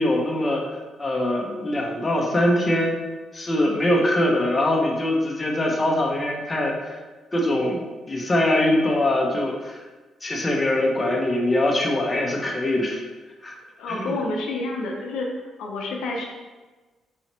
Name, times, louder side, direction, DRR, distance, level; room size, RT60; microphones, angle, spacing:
voice 1, 0.0-3.0 3.3-7.0 7.3-7.8 8.1-9.8 10.2-13.0 13.4-13.5 13.9-14.1, left 1 dB, 25° left, -1 dB, 0.7 m, -23 dB
voice 2, 13.8-15.3 15.6-16.3, left 2 dB, 85° left, 0 dB, 0.6 m, -28 dB
4.0 x 2.8 x 3.0 m, 1.3 s
cardioid pair, 90°, 0 cm